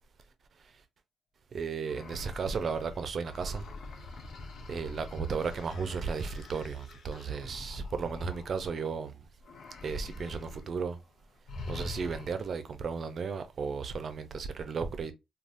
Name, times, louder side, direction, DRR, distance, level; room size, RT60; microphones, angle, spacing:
voice 1, 1.5-3.7 4.7-9.1 9.8-11.0 11.7-15.1, right 5 dB, 50° right, 0.5 m, -34 dB
sound 1, 1.8-9.0 9.4-10.7 10.9-11.1 11.5-12.6, left 3 dB, 65° left, 0.8 m, -45 dB
3.4 x 2.3 x 2.6 m
cardioid pair, 90°, 0 cm